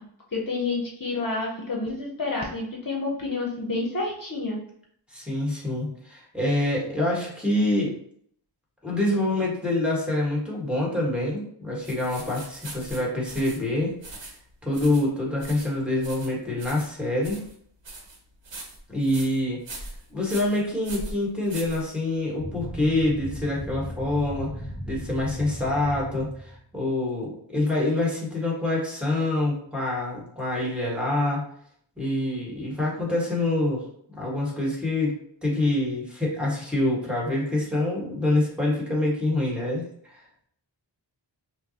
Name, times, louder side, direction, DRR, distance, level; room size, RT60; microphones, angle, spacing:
voice 1, 0.3-4.6, left 3 dB, 45° left, -2 dB, 0.8 m, -29 dB
voice 2, 5.1-7.9 8.8-13.9 14.6-17.4 18.9-19.6 20.1-31.4 32.0-33.8 34.2-40.2, left 1 dB, ahead, -5 dB, 1.5 m, -26 dB
sound 1, 11.8-22.3, right 2 dB, 75° right, 1.0 m, -42 dB
sound 2, 22.4-26.6, equal, 25° left, 1.4 m, -36 dB
5.5 x 2.0 x 2.8 m, 0.65 s
wide cardioid pair, 55°, 46 cm